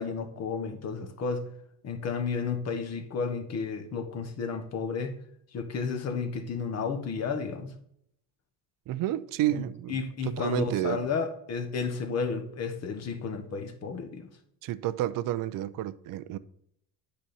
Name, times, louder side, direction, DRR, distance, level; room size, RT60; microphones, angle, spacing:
voice 1, 0.0-1.5 1.8-5.2 5.5-7.7 9.5-14.3, left 5 dB, 45° left, 1.2 m, -32 dB
voice 2, 8.9-11.0 14.6-16.4, right 13 dB, 60° right, 0.6 m, -30 dB
8.8 x 5.2 x 4.2 m
cardioid pair, 120°, 38 cm